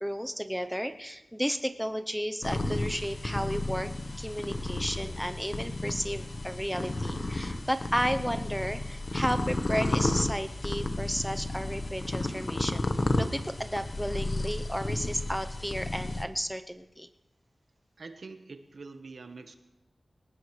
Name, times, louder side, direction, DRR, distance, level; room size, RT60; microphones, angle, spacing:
voice 1, 0.0-3.9 4.2-12.9 13.2-17.1, equal, ahead, 8 dB, 0.7 m, -33 dB
sound 1, 2.4-16.2, left 2 dB, 50° left, 1.1 m, -32 dB
voice 2, 18.0-19.5, right 3 dB, 75° right, 8 dB, 1.1 m, -45 dB
21.5 x 19.0 x 3.2 m, 1.0 s
wide cardioid pair, 85°, 0 cm